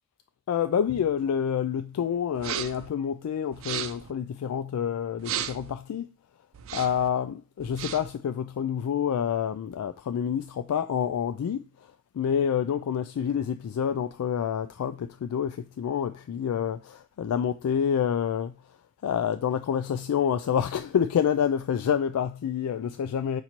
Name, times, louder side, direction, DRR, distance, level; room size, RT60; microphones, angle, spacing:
voice 1, 0.5-6.1 6.7-11.7 12.1-18.5 19.0-23.4, left 8 dB, 90° left, 0.3 m, -28 dB
sound 1, 2.4-2.9 3.5-4.1 5.2-5.7 6.5-7.1 7.6-8.2, right 10 dB, 65° right, 0.4 m, -35 dB
4.3 x 2.6 x 4.4 m
head